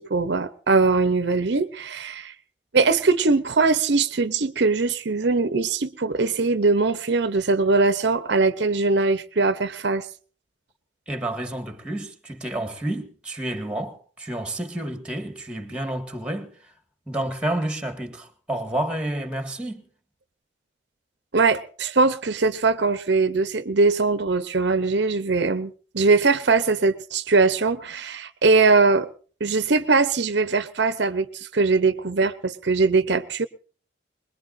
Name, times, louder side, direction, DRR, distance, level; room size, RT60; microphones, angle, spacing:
voice 1, 0.0-2.3 2.7-10.1 21.3-29.1 29.4-33.5, right 3 dB, 65° right, 0.7 m, -21 dB
voice 2, 11.1-16.5 17.1-19.9, right 1 dB, 5° right, 1.8 m, -30 dB
23.0 x 21.0 x 2.6 m
head